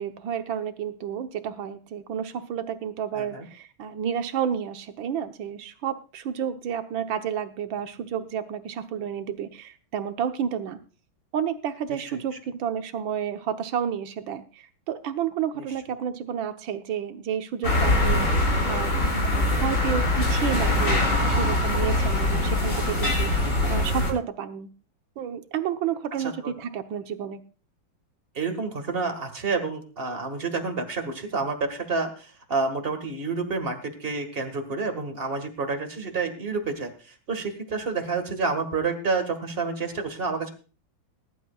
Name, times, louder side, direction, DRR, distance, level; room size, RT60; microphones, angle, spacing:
voice 1, 0.0-10.8 11.3-24.7 25.2-27.4, right 8 dB, 75° right, 9 dB, 1.7 m, -31 dB
voice 2, 3.1-3.5 12.1-12.2 15.5-15.7 23.4-23.8 26.2-26.5 28.3-40.5, right 4 dB, 30° right, 6 dB, 1.8 m, -29 dB
sound 1, 17.6-24.1, left 2 dB, 60° left, 6.9 m, -23 dB
20.5 x 11.5 x 2.4 m, 0.36 s
omnidirectional pair, 2.2 m